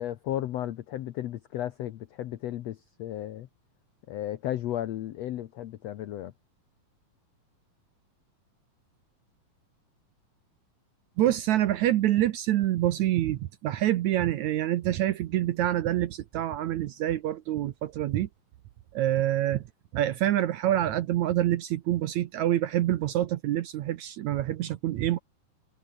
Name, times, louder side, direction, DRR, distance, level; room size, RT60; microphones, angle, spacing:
voice 1, 0.0-3.5 4.1-6.3, left 12 dB, 75° left, 1.5 m, -34 dB
voice 2, 11.2-18.3 18.9-19.6 19.9-25.2, right 13 dB, 70° right, 1.9 m, -26 dB
omnidirectional pair, 4.1 m